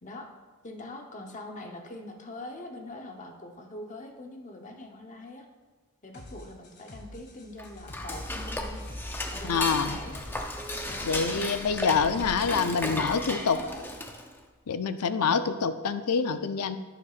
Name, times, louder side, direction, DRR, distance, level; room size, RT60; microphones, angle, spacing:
voice 1, 0.6-5.5 6.0-8.9 9.3-10.2 10.9-11.2 11.9-13.9, left 2 dB, 35° left, 3 dB, 0.9 m, -43 dB
sound 1, 6.1-14.0, left 1 dB, 50° left, 1.7 m, -48 dB
Dishes pots and pans / Cutlery silverware, 7.5-14.4, left 1 dB, 10° left, 0.6 m, -35 dB
voice 2, 9.4-10.0 11.0-13.6 14.7-16.8, left 5 dB, 90° left, 10 dB, 0.5 m, -26 dB
11.5 x 9.9 x 2.5 m, 1.3 s
head